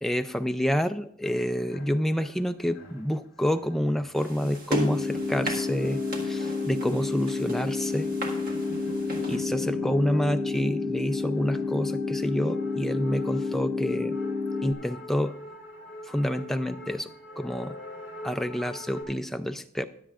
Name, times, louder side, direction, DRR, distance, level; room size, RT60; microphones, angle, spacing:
voice 1, 0.0-8.1 9.3-14.2 14.6-15.3 16.1-17.1 17.4-17.8 18.2-19.9, equal, ahead, 8 dB, 0.3 m, -28 dB
sound 1, 1.2-19.0, left 1 dB, 60° left, 3.0 m, -44 dB
sound 2, 4.1-9.4, left 1 dB, 40° right, 1.7 m, -36 dB
sound 3, 4.7-14.7, left 3 dB, 25° right, 1.2 m, -30 dB
21.5 x 7.7 x 2.4 m, 0.70 s
head